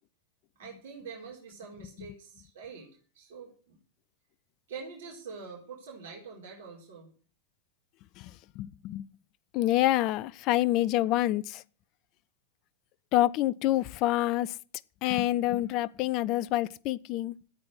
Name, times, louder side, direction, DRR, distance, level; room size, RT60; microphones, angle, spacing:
voice 1, 0.6-2.9 3.1-3.8 4.7-7.1, right 5 dB, 55° right, 4.2 m, -45 dB
voice 2, 8.2-9.1 9.5-11.6 13.1-14.6 15.0-17.3, left 15 dB, 40° left, 0.6 m, -27 dB
13.5 x 8.6 x 7.9 m
figure-of-eight pair, 90°, 0 cm